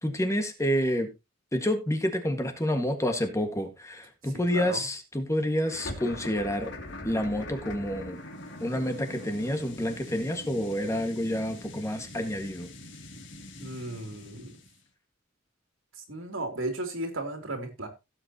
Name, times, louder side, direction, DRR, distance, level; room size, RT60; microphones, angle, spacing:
voice 1, 0.0-1.1 1.5-6.7 7.0-8.2 8.6-12.7, equal, 15° left, 1.7 m, -29 dB
voice 2, 4.3-4.8 13.6-14.5 16.0-17.9, right 2 dB, 75° right, 3.0 m, -35 dB
sound 1, 5.6-14.8, left 1 dB, 65° left, 2.7 m, -43 dB
16.5 x 8.0 x 2.9 m
head